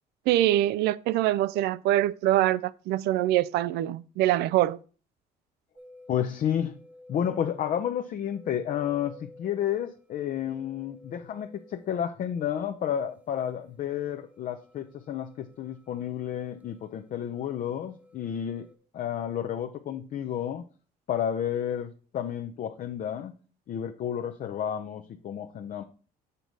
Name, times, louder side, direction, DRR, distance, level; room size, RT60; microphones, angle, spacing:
voice 1, 0.3-4.8, right 14 dB, 80° right, 0.4 m, -24 dB
sound 1, 5.8-18.7, left 2 dB, 10° right, 1.0 m, -54 dB
voice 2, 6.1-6.8 7.1-18.7 18.9-20.6 21.1-23.3 23.7-25.8, left 9 dB, 50° left, 0.6 m, -31 dB
6.7 x 4.0 x 6.0 m
cardioid pair, 110°, 17 cm